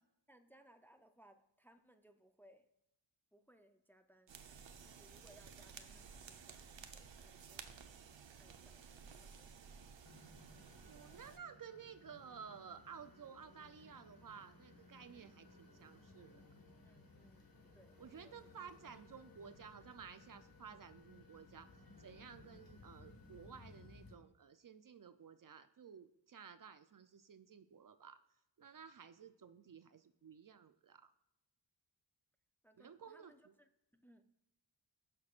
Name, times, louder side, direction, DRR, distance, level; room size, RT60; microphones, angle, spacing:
voice 1, 0.3-2.7 3.3-4.4 4.8-7.8 8.4-9.8 16.8-18.5 32.6-34.3, right 1 dB, 5° left, 7 dB, 0.5 m, -67 dB
sound 1, 4.3-11.4, right 6 dB, 80° right, 0.8 m, -55 dB
sound 2, 10.0-24.2, left 2 dB, 50° left, 1.6 m, -61 dB
voice 2, 10.8-16.4 18.0-21.7 22.0-28.2 28.6-31.1 32.8-33.3, right 7 dB, 50° right, 11 dB, 0.5 m, -54 dB
17.5 x 6.1 x 2.4 m, 0.85 s
wide cardioid pair, 95°, 44 cm